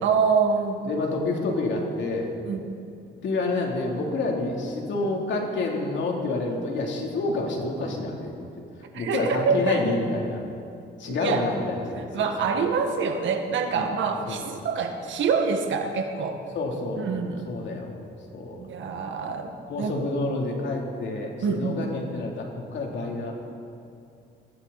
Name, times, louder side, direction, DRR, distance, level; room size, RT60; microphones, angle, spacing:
voice 1, 0.0-0.8 2.5-2.6 8.9-9.8 11.1-11.5 12.0-16.4 17.0-17.5 18.6-19.9 21.4-21.8, right 5 dB, 70° right, 4 dB, 1.8 m, -26 dB
voice 2, 0.8-2.3 3.2-8.3 8.9-10.4 11.0-12.3 13.7-13.9 14.3-14.5 16.5-17.0 17.5-18.0 18.3-18.6 19.7-23.3, left 2 dB, 65° left, 0 dB, 3.4 m, -28 dB
22.5 x 15.0 x 4.3 m, 2.4 s
cardioid pair, 90°, 20 cm